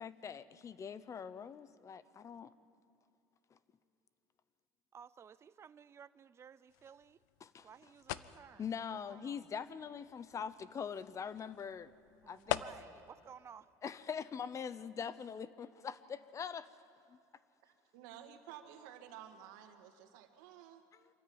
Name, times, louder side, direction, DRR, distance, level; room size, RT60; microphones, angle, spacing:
voice 1, 0.0-2.5 7.4-7.7 8.6-11.9 12.3-12.6 13.8-16.7 17.1-17.2, left 7 dB, 30° left, 16 dB, 0.8 m, -43 dB
voice 2, 4.9-7.2 7.6-8.7 9.1-9.5 12.2-13.7, right 7 dB, 30° right, 15 dB, 0.5 m, -56 dB
sound 1, 6.7-13.1, left 14 dB, 90° left, 0.6 m, -45 dB
voice 3, 17.6-20.8, right 10 dB, 85° right, 5 dB, 2.1 m, -53 dB
26.0 x 13.5 x 8.9 m, 2.6 s
supercardioid pair, 110°, 10 cm